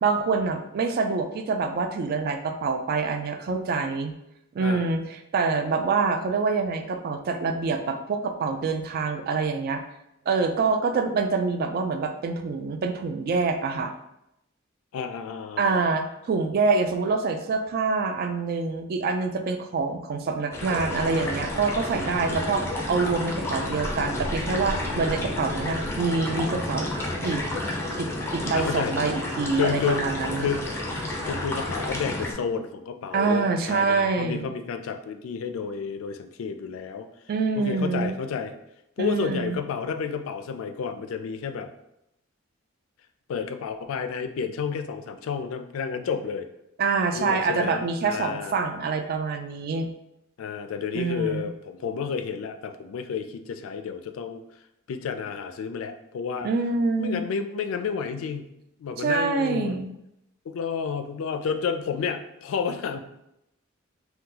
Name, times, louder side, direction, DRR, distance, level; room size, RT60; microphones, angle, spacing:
voice 1, 0.0-4.1 4.5-9.8 10.3-13.9 15.6-26.9 27.2-27.4 28.0-30.5 33.1-34.5 37.3-38.2 39.0-39.6 46.8-49.9 50.9-51.5 56.4-57.2 59.0-59.9, right 4 dB, 50° right, 6 dB, 0.3 m, -26 dB
voice 2, 4.6-4.9 14.9-15.8 28.5-29.0 29.6-30.1 30.4-30.6 31.3-37.1 37.6-38.5 39.0-41.7 43.3-46.5 47.1-48.6 50.4-54.4 54.9-56.5 57.0-58.5 58.8-59.8 60.5-63.0, left 6 dB, 80° left, 8 dB, 0.3 m, -31 dB
sound 1, 20.5-32.3, left 1 dB, 15° left, 0.5 m, -30 dB
2.8 x 2.2 x 3.7 m, 0.82 s
head